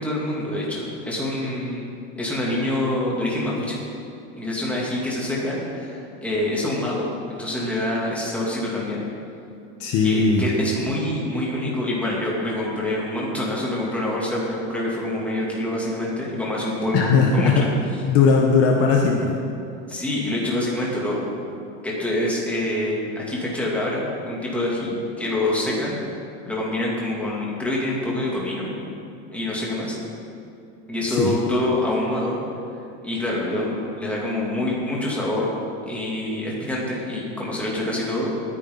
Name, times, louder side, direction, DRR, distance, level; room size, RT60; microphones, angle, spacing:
voice 1, 0.0-1.9 2.2-3.8 4.4-9.0 10.0-17.7 19.9-21.2 21.8-26.0 26.4-28.8 29.3-30.0 30.9-32.4 33.0-35.5 35.9-38.4, left 1 dB, 5° left, -5 dB, 2.7 m, -26 dB
voice 2, 9.8-10.5 16.9-17.7 18.0-19.4 31.1-31.4, left 5 dB, 45° left, 1 dB, 1.1 m, -18 dB
20.0 x 9.8 x 3.9 m, 2.6 s
supercardioid pair, 155°, 34 cm